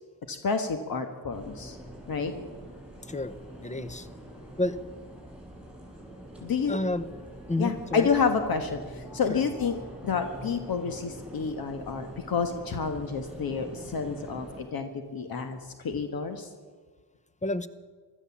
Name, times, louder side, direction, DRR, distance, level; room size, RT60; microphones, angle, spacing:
voice 1, 0.3-1.8 2.1-2.3 6.4-6.8 7.6-9.8 10.0-16.5, left 5 dB, 60° left, 7 dB, 1.4 m, -29 dB
sound 1, 1.3-14.6, right 1 dB, 5° right, 6.4 m, -45 dB
voice 2, 3.6-4.1 4.6-4.8 6.7-7.1 7.5-8.1 9.3-9.4 17.4-17.7, left 2 dB, 20° left, 14 dB, 0.9 m, -30 dB
15.5 x 12.5 x 7.2 m, 1.5 s
cardioid pair, 85°, 39 cm